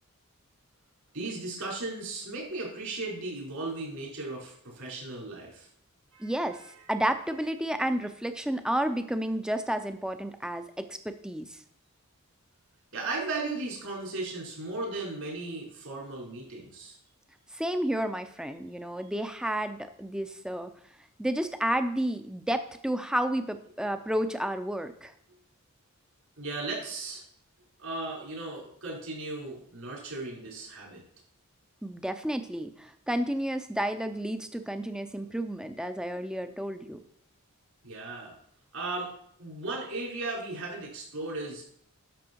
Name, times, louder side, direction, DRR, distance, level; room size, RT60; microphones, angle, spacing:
voice 1, 1.1-5.7 6.1-6.3 12.9-17.0 26.4-27.2 27.8-31.0 37.8-38.3 38.7-39.1 39.4-41.6, right 2 dB, 70° right, -3 dB, 5.2 m, -36 dB
voice 2, 6.2-6.6 6.9-11.6 17.5-20.7 21.2-25.1 31.8-37.0, right 1 dB, 5° right, 8 dB, 0.6 m, -31 dB
11.5 x 6.5 x 4.6 m, 0.64 s
head